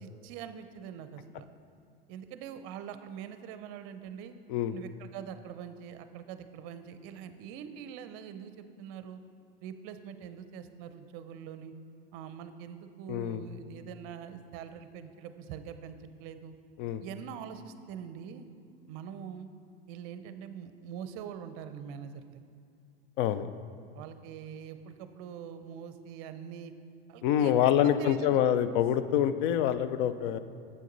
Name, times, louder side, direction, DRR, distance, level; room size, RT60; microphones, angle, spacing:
voice 1, 0.0-1.5 2.1-4.3 4.7-9.2 9.6-11.7 12.1-16.5 17.0-18.5 18.9-19.5 19.9-22.4 23.9-26.7 27.1-28.4, right 8 dB, 45° right, 10 dB, 0.6 m, -44 dB
voice 2, 13.1-13.4 16.8-17.0 23.2-23.5 27.2-30.4, left 10 dB, 55° left, 12 dB, 0.5 m, -26 dB
7.8 x 6.4 x 3.9 m, 2.4 s
hypercardioid pair, 110°, 31 cm